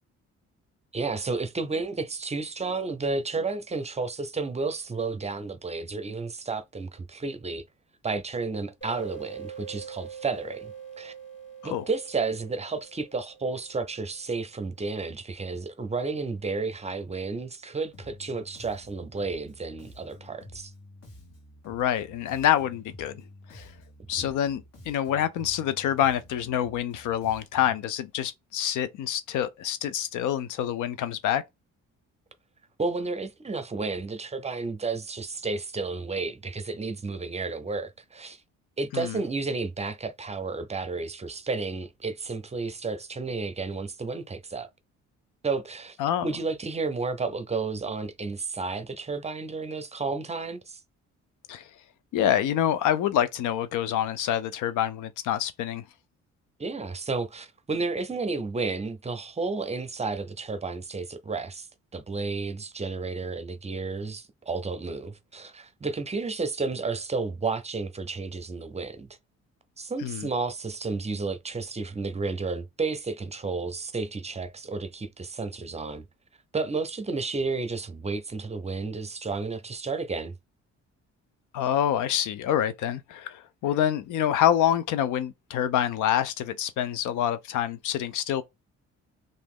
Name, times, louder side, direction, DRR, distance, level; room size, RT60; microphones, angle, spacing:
voice 1, 0.9-7.6 8.0-11.1 11.6-20.7 24.2-24.3 32.8-38.4 38.8-44.7 45.4-46.0 46.2-50.8 56.6-61.7 61.9-69.1 69.8-76.0 76.5-80.4, right 4 dB, 20° right, 0.6 m, -32 dB
sound 1, 8.8-14.1, right 7 dB, 40° left, 2.0 m, -43 dB
Bass guitar, 17.9-27.8, left 1 dB, 55° left, 1.7 m, -50 dB
voice 2, 21.7-23.2 23.5-23.7 24.1-31.4 38.9-39.2 46.0-46.3 51.5-51.6 52.1-55.8 70.0-70.3 81.5-88.4, left 10 dB, 80° left, 0.5 m, -26 dB
3.0 x 2.6 x 3.5 m
cardioid pair, 90°, 30 cm